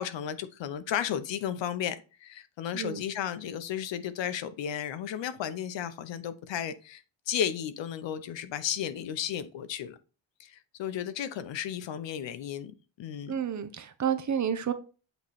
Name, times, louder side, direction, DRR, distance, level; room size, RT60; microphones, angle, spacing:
voice 1, 0.0-10.0 10.4-13.4, left 9 dB, 65° left, 0.8 m, -34 dB
voice 2, 2.7-3.0 13.3-14.7, right 8 dB, 40° right, 0.7 m, -30 dB
8.1 x 3.1 x 4.2 m
cardioid pair, 125°, 47 cm